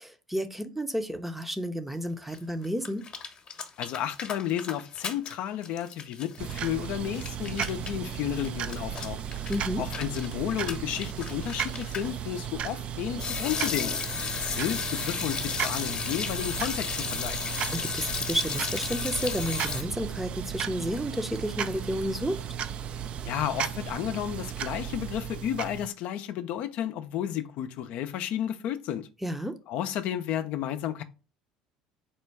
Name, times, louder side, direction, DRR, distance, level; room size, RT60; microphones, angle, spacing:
voice 1, 0.0-3.0 9.5-9.8 17.7-22.5 29.2-29.5, equal, 5° right, 0.6 m, -31 dB
sound 1, 2.3-2.4 2.6-5.3 5.6-12.1 13.2-19.8, left 5 dB, 40° left, 0.9 m, -34 dB
voice 2, 3.8-9.2 9.8-13.9 14.3-17.4 23.2-29.1 29.7-31.0, left 11 dB, 65° left, 0.5 m, -32 dB
sound 2, 6.4-25.9, right 9 dB, 50° right, 0.3 m, -35 dB
4.4 x 2.2 x 4.5 m
hypercardioid pair, 80°, 2 cm